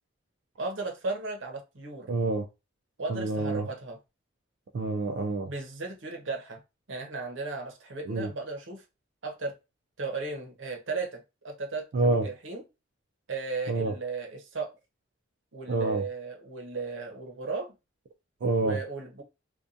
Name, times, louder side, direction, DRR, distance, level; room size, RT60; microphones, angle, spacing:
voice 1, 0.6-2.1 3.0-4.0 5.4-6.6 6.9-8.8 9.2-9.5 10.0-12.6 13.3-14.7 15.5-17.7 18.6-19.2, right 3 dB, 85° right, 0.7 m, -35 dB
voice 2, 2.1-2.5 3.1-3.7 4.7-5.5 8.1-8.3 11.9-12.3 13.7-13.9 15.7-16.0 18.4-18.8, right 2 dB, 65° right, 0.3 m, -27 dB
2.6 x 2.2 x 2.4 m
head